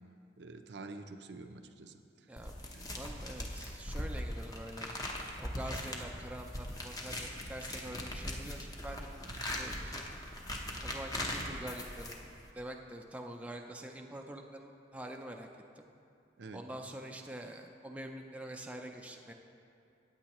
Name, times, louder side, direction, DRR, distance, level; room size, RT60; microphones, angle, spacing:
voice 1, 0.4-2.0 2.7-3.0 9.3-9.5 16.4-16.6, right 3 dB, 65° right, 6 dB, 0.6 m, -48 dB
sound 1, 2.4-12.5, left 1 dB, 20° left, 0.8 m, -40 dB
voice 2, 3.0-4.9 5.4-9.3 9.6-10.0 10.8-12.3 12.6-15.5 15.8-15.9 16.5-19.3, right 1 dB, 5° right, 2 dB, 0.4 m, -45 dB
14.5 x 8.9 x 3.0 m, 2.5 s
head